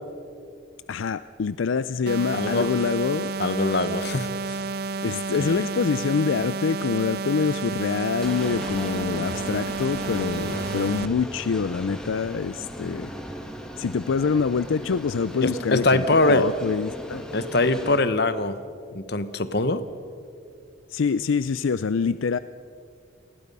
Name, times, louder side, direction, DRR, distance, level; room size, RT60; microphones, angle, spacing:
voice 1, 0.9-3.3 5.0-13.1 13.8-17.3 20.9-22.4, left 5 dB, 80° left, 14 dB, 0.4 m, -25 dB
sound 1, 2.1-11.1, right 4 dB, 50° right, 0.5 m, -31 dB
voice 2, 2.3-2.7 3.4-4.6 5.1-5.6 15.4-16.5 17.3-18.6 18.9-19.8, left 2 dB, 55° left, 12 dB, 1.1 m, -23 dB
sound 2, 8.2-18.0, equal, 5° left, 2.0 m, -37 dB
29.5 x 20.0 x 5.4 m, 2.4 s
head